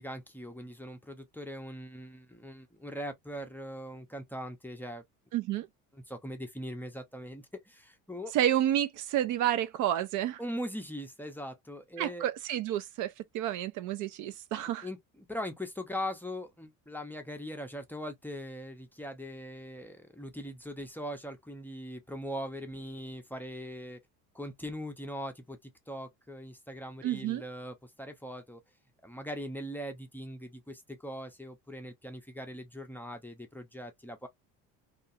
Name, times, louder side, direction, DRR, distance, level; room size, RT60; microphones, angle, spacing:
voice 1, 0.0-5.0 5.9-8.3 10.4-12.3 14.8-24.0 24.3-28.6 29.0-34.3, equal, 5° left, 0.5 m, -41 dB
voice 2, 5.3-5.7 8.3-10.4 12.0-14.9 27.0-27.4, right 12 dB, 55° right, 0.4 m, -30 dB
2.4 x 2.3 x 2.6 m
supercardioid pair, 105°, 36 cm